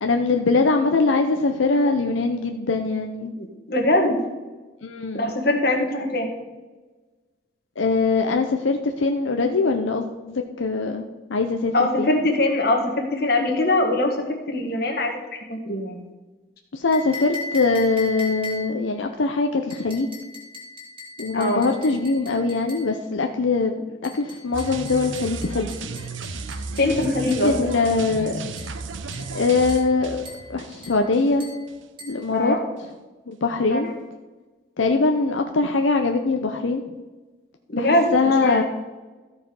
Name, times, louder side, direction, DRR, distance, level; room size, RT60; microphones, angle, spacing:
voice 1, 0.0-3.3 4.8-5.3 7.8-12.1 16.7-20.2 21.2-25.7 27.3-28.4 29.3-30.2 30.5-31.5 32.0-32.5 33.3-33.9 34.8-36.8 37.7-38.6, left 3 dB, 85° left, 4 dB, 0.7 m, -22 dB
voice 2, 3.4-4.2 5.1-6.3 11.7-14.2 14.5-15.1 15.5-16.1 21.3-21.7 26.8-27.7 32.3-32.6 33.7-33.8 37.7-38.6, left 1 dB, 50° left, 2 dB, 1.7 m, -22 dB
sound 1, 16.9-18.9 19.7-22.9 24.0-27.5 28.6-28.8 29.1-29.4 29.7-30.0 30.2-30.5 30.8-31.1 31.4-31.6 32.0-32.2, left 3 dB, 30° right, 2.5 m, -38 dB
sound 2, 24.5-31.4 31.7-31.8, right 4 dB, 85° right, 0.7 m, -34 dB
14.0 x 5.0 x 5.4 m, 1.2 s
head